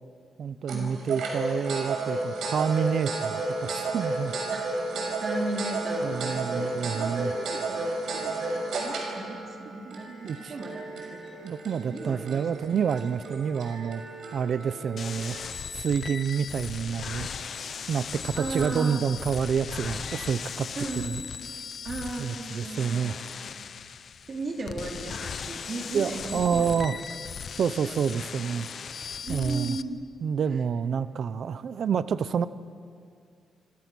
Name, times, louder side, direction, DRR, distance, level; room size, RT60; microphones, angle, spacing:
voice 1, 0.4-4.3 6.0-7.3 9.9-10.6 11.4-14.0 14.3-20.7 20.9-21.2 22.2-23.2 25.9-26.9 27.6-28.7 29.0-29.8 30.2-32.5, right 7 dB, 50° right, 14 dB, 0.6 m, -28 dB
sound 1, 0.7-15.5, right 2 dB, 65° right, 6.2 m, -33 dB
voice 2, 5.2-11.2 11.9-12.4 18.3-19.1 20.7-21.2 21.8-23.3 24.3-27.0 27.6-28.1 29.2-30.0, right 2 dB, 35° right, 1 dB, 2.9 m, -36 dB
sound 2, 15.0-29.8, left 6 dB, 40° left, 0.7 m, -38 dB
28.5 x 26.5 x 6.2 m, 2.3 s
wide cardioid pair, 180°, 0 cm